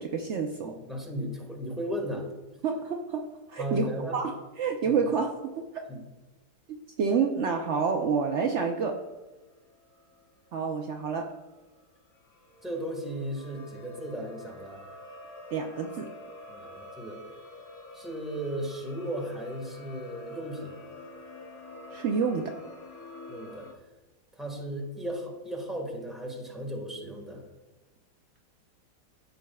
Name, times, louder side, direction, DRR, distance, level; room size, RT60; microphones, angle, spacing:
voice 1, 0.0-0.7 2.6-5.6 6.7-9.0 10.5-11.3 15.5-16.1 21.9-22.6, right 5 dB, 80° right, 2 dB, 0.6 m, -29 dB
voice 2, 0.6-2.3 3.6-4.2 4.8-5.0 5.9-6.0 12.6-14.8 16.5-17.2 17.9-20.8 23.3-23.7 24.3-27.4, equal, ahead, 0 dB, 1.3 m, -35 dB
sound 1, 7.3-23.7, left 2 dB, 60° left, 1.4 m, -48 dB
13.5 x 5.4 x 2.3 m, 1.2 s
omnidirectional pair, 1.9 m